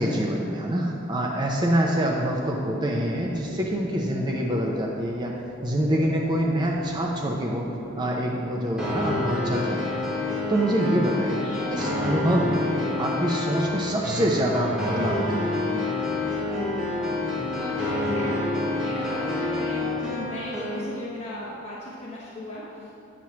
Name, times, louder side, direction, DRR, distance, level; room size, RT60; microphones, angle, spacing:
voice 1, 0.0-7.7 8.0-10.0 10.5-11.4 11.7-12.7 13.0-15.8, right 1 dB, 20° right, -1 dB, 0.4 m, -25 dB
sound 1, 2.1-20.0, right 1 dB, 70° right, 1.2 m, -42 dB
sound 2, 8.8-20.8, left 2 dB, 5° right, 0.9 m, -28 dB
voice 2, 11.4-11.7 17.5-22.9, left 1 dB, 30° left, -9 dB, 1.0 m, -37 dB
8.4 x 3.1 x 5.8 m, 2.7 s
head